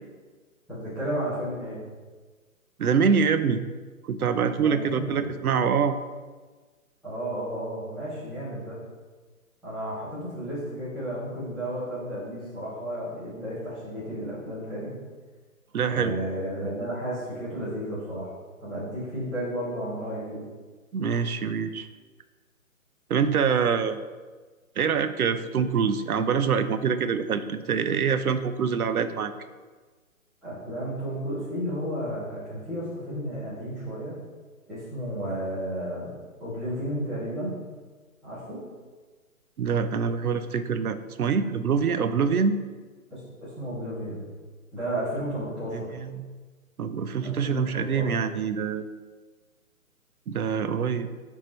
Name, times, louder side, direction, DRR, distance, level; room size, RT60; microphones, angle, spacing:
voice 1, 0.7-1.8 4.5-5.4 7.0-8.8 9.6-14.9 15.9-18.3 18.6-20.4 30.4-34.2 34.7-36.1 36.4-37.5 38.2-38.6 43.1-44.2 44.7-45.9 47.2-48.1, equal, ahead, -16 dB, 0.6 m, -33 dB
voice 2, 2.8-3.6 4.1-6.0 15.7-16.1 20.9-21.9 23.1-24.0 24.8-29.3 39.6-42.6 45.7-46.2 46.8-48.8 50.3-51.1, right 6 dB, 80° right, 11 dB, 0.7 m, -25 dB
10.0 x 3.6 x 3.1 m, 1.4 s
hypercardioid pair, 150°, 43 cm